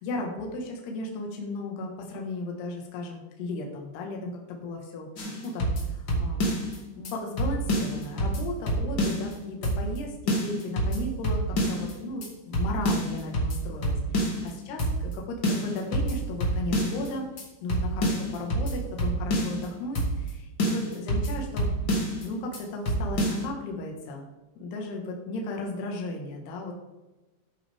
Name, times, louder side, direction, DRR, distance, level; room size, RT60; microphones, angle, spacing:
voice 1, 0.0-5.1 5.4-5.7 5.9-6.5 6.9-14.4 14.7-17.2 17.6-21.7 22.2-24.3 24.6-26.7, left 2 dB, 65° left, 1 dB, 3.3 m, -35 dB
sound 1, 5.2-6.8 7.0-7.1 7.4-9.3 9.6-10.0 10.3-11.9 12.2-12.3 12.5-14.5 14.8-15.1 15.4-17.1 17.4-17.5 17.7-19.7 19.9-20.3 20.6-22.2 22.5-22.6 22.8-23.4, right 1 dB, 50° left, 1.4 m, -27 dB
13.0 x 8.5 x 3.5 m, 1.1 s
omnidirectional pair, 5.6 m